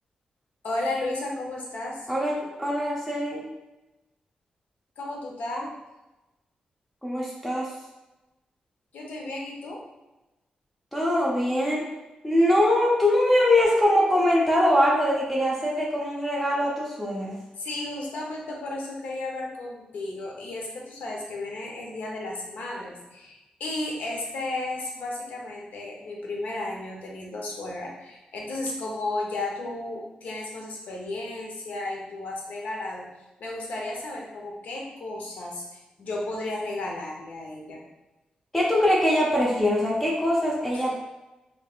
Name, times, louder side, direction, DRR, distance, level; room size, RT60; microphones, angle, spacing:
voice 1, 0.6-2.1 5.0-5.8 8.9-9.8 17.6-33.1 33.4-37.8 40.7-40.8, left 2 dB, 90° left, -1 dB, 0.8 m, -33 dB
voice 2, 2.1-3.4 7.0-7.7 10.9-11.9 12.2-17.4 38.5-41.0, left 1 dB, 5° left, -4 dB, 0.7 m, -22 dB
3.4 x 3.1 x 2.4 m, 1.0 s
wide cardioid pair, 120°, 3 cm